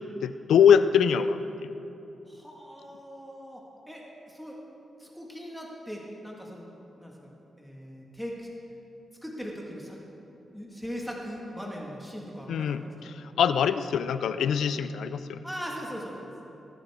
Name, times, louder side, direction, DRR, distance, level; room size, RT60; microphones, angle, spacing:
voice 1, 0.2-1.4 12.5-15.4, left 7 dB, 90° left, 12 dB, 0.4 m, -23 dB
voice 2, 2.3-3.6 3.9-4.6 5.0-6.6 7.0-8.5 9.2-10.0 10.5-12.8 15.4-16.3, equal, ahead, -2 dB, 1.7 m, -40 dB
20.5 x 9.0 x 3.6 m, 2.9 s
cardioid pair, 85°, 0 cm